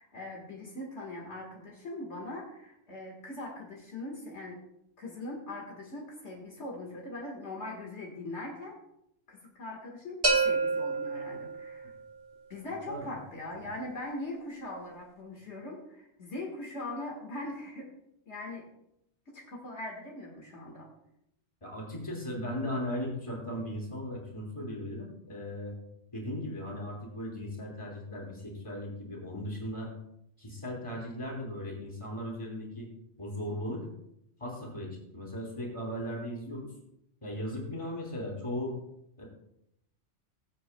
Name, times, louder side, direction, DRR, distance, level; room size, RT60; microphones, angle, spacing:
voice 1, 0.0-4.6 5.0-8.8 9.3-11.9 12.5-17.9 18.3-18.7 19.3-20.9, left 2 dB, 70° left, -1 dB, 1.9 m, -41 dB
sound 1, 10.2-12.1, right 3 dB, 50° right, 1.5 m, -28 dB
voice 2, 21.6-25.7 26.1-29.9 30.4-32.9 33.2-33.8 34.4-36.7 37.2-38.7 39.2-39.3, left 1 dB, 25° left, -2 dB, 3.1 m, -37 dB
21.0 x 7.9 x 2.2 m, 0.81 s
omnidirectional pair, 1.2 m